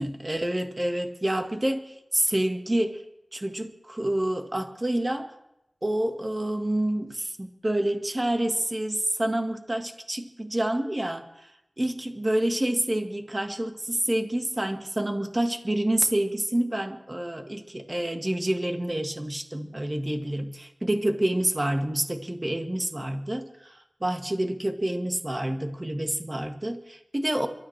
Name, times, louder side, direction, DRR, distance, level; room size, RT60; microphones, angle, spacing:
voice 1, 0.0-3.0 3.3-5.3 5.8-11.5 11.8-27.5, right 1 dB, 30° right, 5 dB, 1.6 m, -28 dB
29.5 x 13.0 x 3.3 m, 0.87 s
wide cardioid pair, 50°, 0 cm